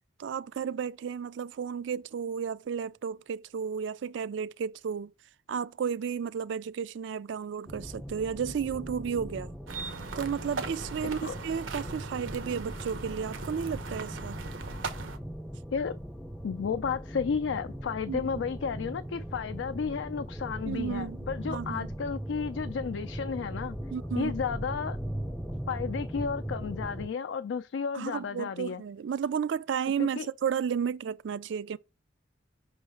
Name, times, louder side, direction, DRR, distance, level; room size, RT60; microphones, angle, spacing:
voice 1, 0.2-5.1 5.5-9.5 10.1-14.4 18.1-18.2 20.6-21.2 21.5-21.9 23.9-24.3 27.9-31.8, right 7 dB, 70° right, 0.3 m, -33 dB
sound 1, 7.7-27.1, equal, 5° left, 0.4 m, -39 dB
sound 2, 9.7-15.2, right 4 dB, 90° right, 0.8 m, -39 dB
voice 2, 16.4-23.8 24.2-25.0 25.7-28.8 30.0-30.3, left 6 dB, 75° left, 0.4 m, -33 dB
5.6 x 3.2 x 5.2 m
head